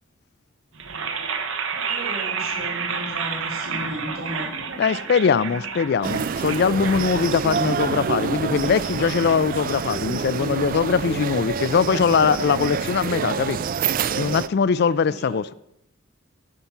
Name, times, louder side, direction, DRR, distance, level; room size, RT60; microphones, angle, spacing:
sound 1, 0.7-10.8, right 5 dB, 70° right, 1.0 m, -31 dB
voice 1, 1.8-4.5 14.7-15.4, equal, 90° right, 4.3 m, -35 dB
voice 2, 4.8-13.6 14.2-15.5, left 6 dB, 50° left, 0.3 m, -21 dB
sound 2, 6.0-14.5, right 6 dB, 40° right, 0.3 m, -27 dB
16.5 x 5.6 x 5.9 m
head